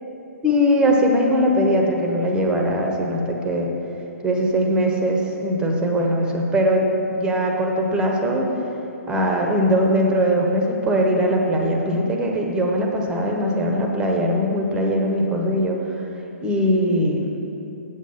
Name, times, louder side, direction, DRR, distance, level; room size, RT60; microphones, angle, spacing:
voice 1, 0.4-3.7 4.2-8.6 9.1-15.8 16.4-17.3, equal, 10° right, 1 dB, 0.9 m, -20 dB
8.1 x 7.3 x 5.8 m, 3.0 s
figure-of-eight pair, 125°, 8 cm